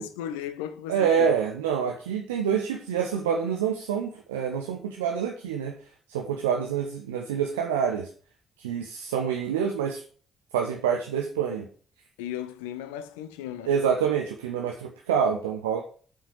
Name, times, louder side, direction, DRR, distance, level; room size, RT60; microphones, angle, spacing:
voice 1, 0.0-1.3 12.2-13.7, left 10 dB, 70° left, 0.8 m, -36 dB
voice 2, 0.9-5.7 6.1-8.1 8.6-10.0 10.5-11.7 13.7-15.8, right 7 dB, 75° right, 0.9 m, -27 dB
8.5 x 5.8 x 6.4 m
figure-of-eight pair, 40°, 0 cm